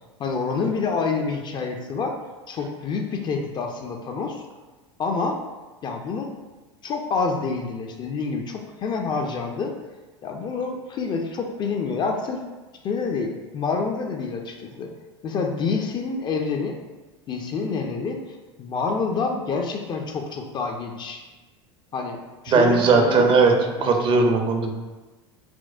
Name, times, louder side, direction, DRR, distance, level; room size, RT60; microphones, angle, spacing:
voice 1, 0.2-2.1 2.5-4.4 5.0-5.4 5.8-6.3 6.8-9.7 10.2-12.4 12.8-14.9 15.2-16.7 17.3-21.2 21.9-22.2 22.4-23.3 23.7-23.9, left 4 dB, 30° left, 3 dB, 0.4 m, -27 dB
voice 2, 22.5-23.5 23.8-24.7, right 4 dB, 35° right, 3 dB, 0.5 m, -18 dB
4.2 x 2.0 x 2.4 m, 1.2 s
hypercardioid pair, 85°, 15 cm